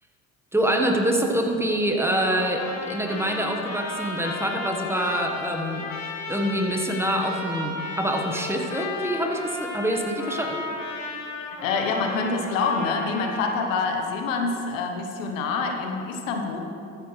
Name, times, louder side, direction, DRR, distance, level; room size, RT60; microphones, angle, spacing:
voice 1, 0.5-5.8 6.3-10.6, equal, 5° right, 2 dB, 1.3 m, -25 dB
Trumpet, 2.0-13.7, left 2 dB, 45° left, 1.9 m, -34 dB
voice 2, 11.6-16.6, left 4 dB, 85° left, 3 dB, 1.1 m, -26 dB
13.5 x 8.8 x 3.3 m, 2.6 s
hypercardioid pair, 75°, 38 cm